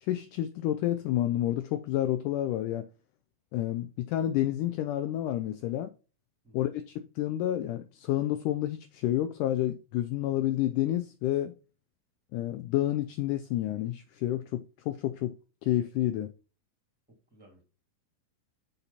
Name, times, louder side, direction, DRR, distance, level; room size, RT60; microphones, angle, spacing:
voice 1, 0.0-2.9 3.5-5.9 6.5-11.6 12.3-15.4 15.6-16.3, left 13 dB, 80° left, 1.9 m, -29 dB
voice 2, 17.1-17.6, right 1 dB, 5° right, 2.5 m, -59 dB
6.8 x 5.7 x 4.2 m
omnidirectional pair, 4.1 m